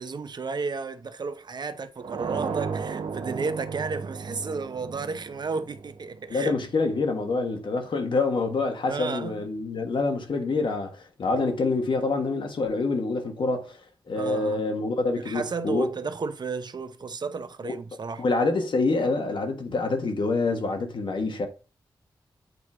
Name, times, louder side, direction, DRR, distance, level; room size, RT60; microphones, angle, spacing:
voice 1, 0.0-6.5 8.9-9.5 14.2-14.6 15.2-18.2 20.5-20.6, right 4 dB, 55° right, 0.8 m, -33 dB
sound 1, 2.0-6.7, right 5 dB, 90° right, 1.0 m, -35 dB
voice 2, 6.3-13.8 14.1-15.9 17.6-17.7 18.2-21.5, left 3 dB, 70° left, 1.5 m, -26 dB
8.3 x 2.9 x 4.9 m
cardioid pair, 60°, 9 cm